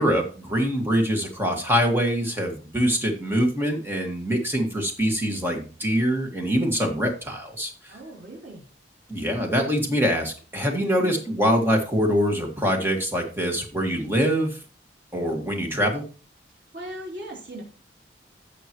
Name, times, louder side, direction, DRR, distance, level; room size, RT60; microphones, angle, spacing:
voice 1, 0.0-7.9 9.1-14.6 15.1-16.0, equal, 15° right, 2 dB, 1.8 m, -24 dB
voice 2, 7.9-8.7 11.0-11.4 16.7-17.6, right 1 dB, 85° right, -3 dB, 3.3 m, -38 dB
15.5 x 6.2 x 3.1 m, 0.37 s
head